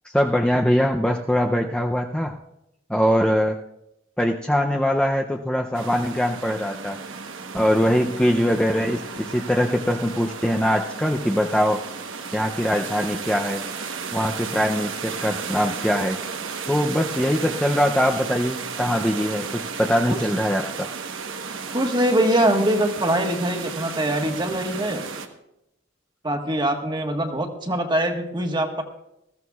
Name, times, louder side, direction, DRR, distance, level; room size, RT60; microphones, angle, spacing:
voice 1, 0.1-2.3 2.9-3.6 4.2-7.0 7.5-11.8 12.3-13.6 14.1-16.2 16.7-20.9, equal, 5° left, 1 dB, 0.5 m, -22 dB
sound 1, 5.7-25.3, right 5 dB, 90° right, 1.1 m, -34 dB
voice 2, 21.7-25.0 26.2-28.8, right 1 dB, 25° right, 4 dB, 1.4 m, -23 dB
20.0 x 14.5 x 2.4 m, 0.86 s
head